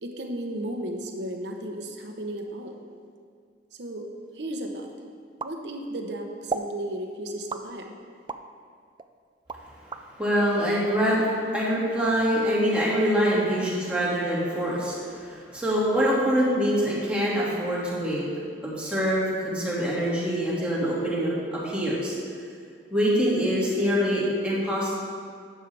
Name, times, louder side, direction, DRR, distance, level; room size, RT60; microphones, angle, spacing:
voice 1, 0.0-2.8 3.8-4.1 4.3-4.9 5.4-8.0, right 1 dB, 65° right, 3 dB, 1.0 m, -34 dB
sound 1, 5.4-6.1 6.5-6.8 7.5-8.5 9.0-10.1, right 4 dB, 25° right, 0.3 m, -34 dB
voice 2, 10.2-18.2 18.6-22.1 22.9-24.9, equal, 5° right, -7 dB, 2.1 m, -25 dB
12.0 x 8.4 x 3.4 m, 2.1 s
head